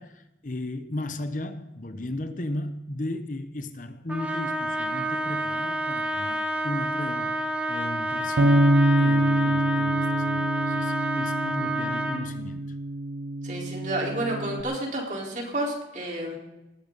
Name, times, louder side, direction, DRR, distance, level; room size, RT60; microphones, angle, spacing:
voice 1, 0.0-12.7, left 1 dB, 45° left, 1.0 m, -35 dB
Trumpet, 4.1-12.3, equal, 5° right, 1.5 m, -29 dB
Bass guitar, 8.4-14.6, right 1 dB, 70° right, 0.8 m, -25 dB
voice 2, 13.4-16.4, right 1 dB, 45° right, 4.4 m, -30 dB
20.0 x 14.0 x 4.1 m
head